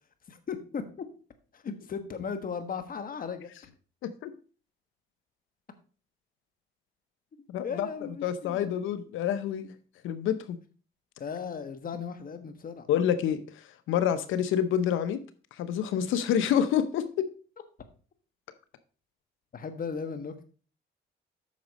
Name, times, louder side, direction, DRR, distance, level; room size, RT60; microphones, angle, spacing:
voice 1, 0.3-1.0 1.5-3.5 7.6-8.8 11.2-12.9 19.5-20.4, left 6 dB, 45° left, 9 dB, 1.3 m, -36 dB
voice 2, 7.5-7.9 8.2-9.7 10.0-10.6 12.9-15.2 15.6-17.3, left 9 dB, 85° left, 12 dB, 0.8 m, -28 dB
8.5 x 6.2 x 4.1 m, 0.39 s
cardioid pair, 90°, 20 cm